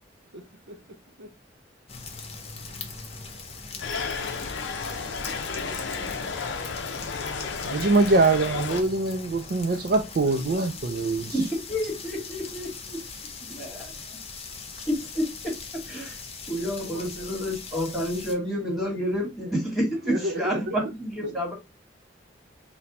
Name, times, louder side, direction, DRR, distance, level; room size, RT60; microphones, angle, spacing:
voice 1, 0.3-1.3 2.6-2.7 5.4-6.8 10.2-11.1 16.8-17.5 20.0-20.9 21.2-21.5, equal, 70° right, 0.8 m, -38 dB
sound 1, 1.9-18.3, left 4 dB, 35° left, 0.8 m, -40 dB
sound 2, 3.8-8.8, left 5 dB, 75° left, 0.6 m, -32 dB
voice 2, 7.6-11.3, right 3 dB, 50° right, 0.4 m, -23 dB
voice 3, 11.3-13.0 13.5-13.9 14.9-15.6 15.8-16.2 16.5-21.5, equal, ahead, 1.5 m, -29 dB
4.1 x 2.2 x 4.0 m
head